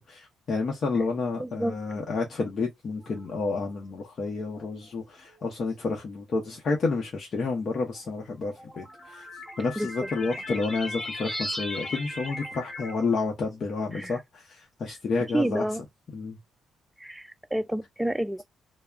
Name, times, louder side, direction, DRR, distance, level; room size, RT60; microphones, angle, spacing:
voice 1, 0.1-9.3 9.6-15.7 16.1-16.4, left 4 dB, 50° left, 0.7 m, -30 dB
voice 2, 1.4-1.8 9.8-10.1 13.9-14.2 15.3-15.8 17.0-18.4, right 1 dB, 5° right, 0.3 m, -29 dB
sound 1, 3.0-3.7 4.5-4.7 5.8-5.9 8.1-13.1, left 1 dB, 30° left, 1.1 m, -37 dB
2.3 x 2.0 x 3.3 m
cardioid pair, 90°, 0 cm